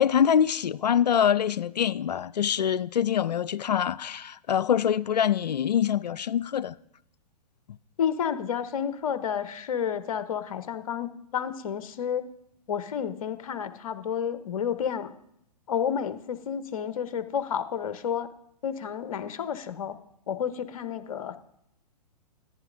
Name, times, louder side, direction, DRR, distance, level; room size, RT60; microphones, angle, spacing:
voice 1, 0.0-6.7, left 9 dB, 80° left, 0.4 m, -24 dB
voice 2, 8.0-12.3 12.7-15.1 15.7-18.3 18.6-20.0 20.3-21.4, left 8 dB, 55° left, 0.8 m, -30 dB
14.0 x 10.0 x 2.6 m
figure-of-eight pair, 115°, 21 cm